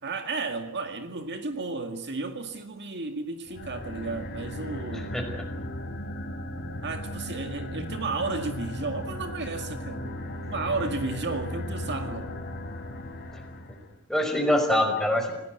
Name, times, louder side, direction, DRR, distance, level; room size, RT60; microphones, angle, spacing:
voice 1, 0.0-5.1 6.8-12.3, right 3 dB, 55° right, 6 dB, 2.1 m, -33 dB
sound 1, 3.5-13.9, left 1 dB, 45° left, 4.2 m, -36 dB
voice 2, 4.9-5.4 14.1-15.3, left 1 dB, ahead, 3 dB, 5.5 m, -24 dB
27.0 x 18.0 x 9.4 m, 0.86 s
head